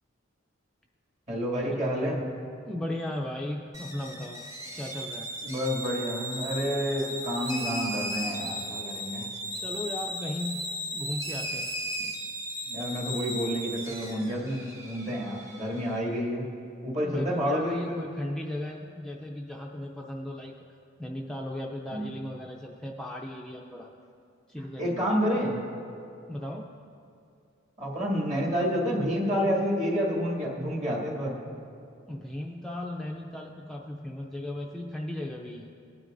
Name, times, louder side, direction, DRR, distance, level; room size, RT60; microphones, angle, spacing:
voice 1, 1.3-2.2 5.4-9.3 12.7-16.5 16.8-18.0 21.9-22.1 24.6-25.6 27.8-31.4, equal, 35° right, -4 dB, 2.3 m, -29 dB
voice 2, 2.7-4.4 4.8-5.3 9.6-10.7 10.9-11.7 17.0-20.5 21.0-23.9 24.5-25.1 26.3-26.7 32.1-35.7, left 1 dB, 5° left, -1 dB, 0.4 m, -36 dB
sound 1, 3.7-16.0, equal, 15° right, 1.0 m, -36 dB
19.0 x 9.5 x 2.6 m, 2.5 s
head